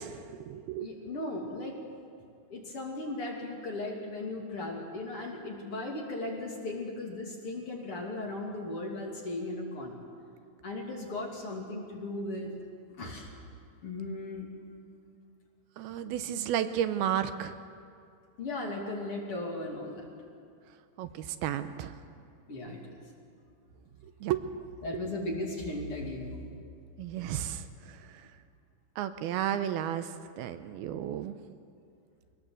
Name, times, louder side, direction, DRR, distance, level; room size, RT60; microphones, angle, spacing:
voice 1, 0.0-0.9 15.8-17.6 21.0-22.0 24.0-24.5 24.9-25.0 27.0-28.3 29.0-31.4, right 10 dB, 85° right, 10 dB, 2.7 m, -33 dB
voice 2, 0.8-1.8 2.5-10.0 10.6-12.5 13.0-13.3 13.8-14.5 18.4-20.1 22.5-22.9 24.8-26.4, left 2 dB, 40° left, -1 dB, 3.3 m, -37 dB
23.5 x 19.0 x 7.8 m, 2.4 s
omnidirectional pair, 4.5 m